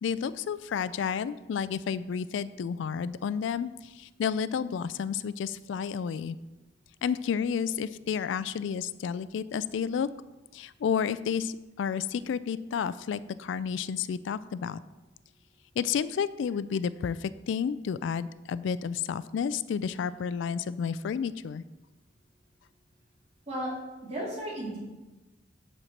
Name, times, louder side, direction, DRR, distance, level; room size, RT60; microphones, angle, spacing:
voice 1, 0.0-6.4 7.0-10.1 10.5-14.8 15.8-21.6, left 7 dB, 75° left, 15 dB, 0.3 m, -31 dB
voice 2, 24.0-24.8, right 1 dB, 35° right, -6 dB, 3.3 m, -34 dB
8.1 x 4.3 x 7.1 m, 1.1 s
head